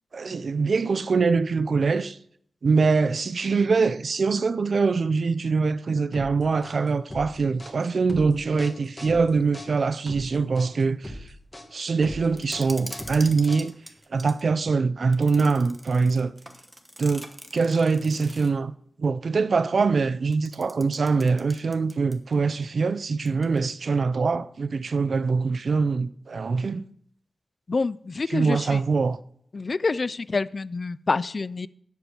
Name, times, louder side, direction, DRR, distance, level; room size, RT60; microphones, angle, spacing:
voice 1, 0.1-2.2 2.6-11.2 11.7-13.7 14.1-16.3 17.0-17.3 17.5-18.7 19.0-26.9 28.3-29.2, right 4 dB, 60° right, 0.5 m, -23 dB
sound 1, 6.1-14.0, left 1 dB, 20° left, 1.7 m, -40 dB
sound 2, 12.4-14.4 15.1-18.6 20.3-22.4 22.6-22.7 23.2-23.7, right 1 dB, 10° right, 1.1 m, -44 dB
voice 2, 27.7-28.8 29.5-31.7, left 3 dB, 40° left, 0.4 m, -27 dB
11.5 x 8.0 x 5.0 m
wide cardioid pair, 125°, 0 cm